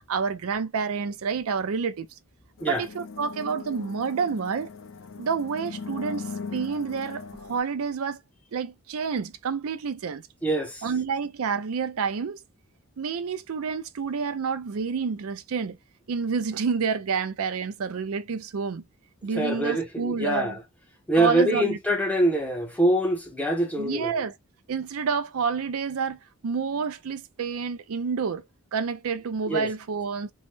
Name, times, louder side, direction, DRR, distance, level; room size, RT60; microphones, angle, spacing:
voice 1, 0.1-2.1 2.6-4.7 5.2-8.2 8.5-10.2 10.8-12.4 13.0-15.8 16.1-18.8 19.2-20.6 21.2-21.8 23.8-24.3 24.7-28.4 28.7-30.3, right 5 dB, 75° right, 0.4 m, -29 dB
sound 1, 2.6-7.6, left 4 dB, 60° left, 0.5 m, -39 dB
voice 2, 10.4-10.9 19.3-20.6 21.1-24.2 29.5-29.7, right 1 dB, 5° left, 0.6 m, -24 dB
3.1 x 2.0 x 3.1 m
head